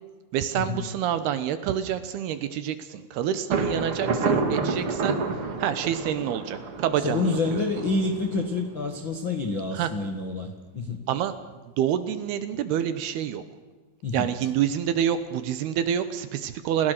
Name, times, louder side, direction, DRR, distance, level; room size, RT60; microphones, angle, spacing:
voice 1, 0.3-5.2 5.6-7.6 9.7-9.9 11.1-11.3 11.8-13.4 14.1-16.9, right 9 dB, 70° right, 11 dB, 2.7 m, -27 dB
Thunder, 3.5-9.2, right 4 dB, 40° right, 2.1 m, -29 dB
voice 2, 7.0-11.0 14.0-14.3, left 3 dB, 60° left, 5 dB, 1.2 m, -28 dB
30.0 x 17.0 x 6.6 m, 1.4 s
omnidirectional pair, 5.3 m